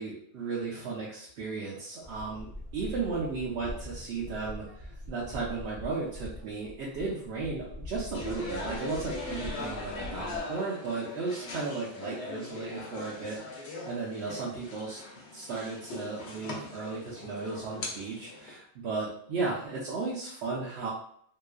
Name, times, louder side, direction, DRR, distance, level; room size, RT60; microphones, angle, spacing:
voice 1, 0.0-2.5 2.7-15.0 15.3-20.9, right 4 dB, 80° right, -6 dB, 0.9 m, -35 dB
sound 1, 2.0-10.4, left 1 dB, 55° right, 0.6 m, -43 dB
sound 2, 8.1-18.6, left 2 dB, 85° left, 0.9 m, -40 dB
2.8 x 2.3 x 2.2 m, 0.63 s
omnidirectional pair, 1.1 m